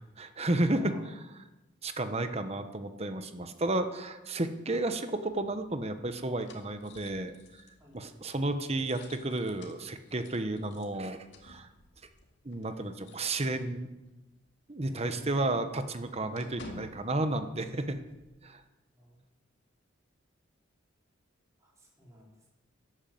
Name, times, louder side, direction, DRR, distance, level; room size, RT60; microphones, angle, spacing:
voice 1, 0.2-0.9 1.8-7.3 7.9-11.7 12.4-13.9 14.7-18.0 18.4-18.6, right 2 dB, 30° right, 9 dB, 1.0 m, -32 dB
voice 2, 0.7-1.1 7.8-8.0 14.8-15.6 16.4-16.6 18.9-19.2 21.6-22.3, equal, 15° right, -4 dB, 4.5 m, -50 dB
sound 1, 5.2-14.1 14.4-14.5 14.9-18.3, left 2 dB, 60° left, 2.2 m, -55 dB
12.5 x 11.0 x 7.8 m, 1.1 s
head